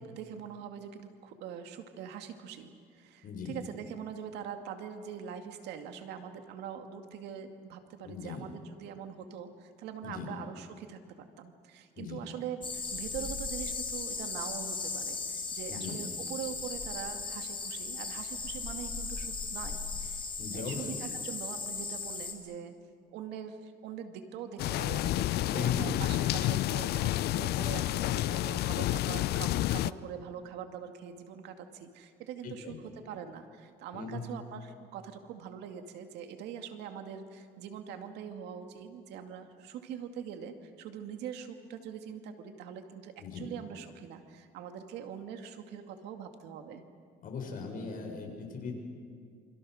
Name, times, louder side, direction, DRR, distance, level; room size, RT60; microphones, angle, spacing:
voice 1, 0.0-20.2 20.5-22.7 23.1-46.8, right 8 dB, 85° right, 6 dB, 2.2 m, -43 dB
voice 2, 3.2-3.6 8.0-8.4 10.0-10.3 11.9-12.2 15.7-16.0 20.4-20.9 25.5-25.8 32.4-32.8 33.9-34.2 43.2-43.5 47.2-48.8, left 6 dB, 55° left, 2 dB, 6.2 m, -38 dB
sound 1, 12.6-22.3, left 4 dB, 30° left, 4.4 m, -37 dB
sound 2, 24.6-29.9, left 15 dB, 70° left, 0.6 m, -30 dB
27.5 x 26.5 x 6.5 m, 2.1 s
cardioid pair, 110°, 17 cm